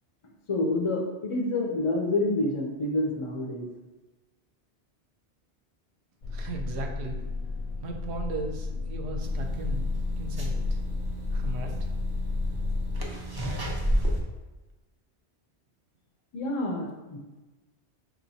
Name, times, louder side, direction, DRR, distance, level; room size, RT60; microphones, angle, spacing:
voice 1, 0.5-3.6 16.3-17.2, left 2 dB, 50° left, 0 dB, 0.3 m, -28 dB
sound 1, 6.2-13.0, left 3 dB, 80° left, 0.9 m, -31 dB
voice 2, 6.3-7.2 7.8-9.9 10.2-10.8 11.3-11.9, right 3 dB, 75° right, 3 dB, 0.8 m, -37 dB
sound 2, 9.2-14.2, right 1 dB, 35° right, 0.4 m, -32 dB
4.8 x 2.9 x 2.7 m, 1.1 s
omnidirectional pair, 1.1 m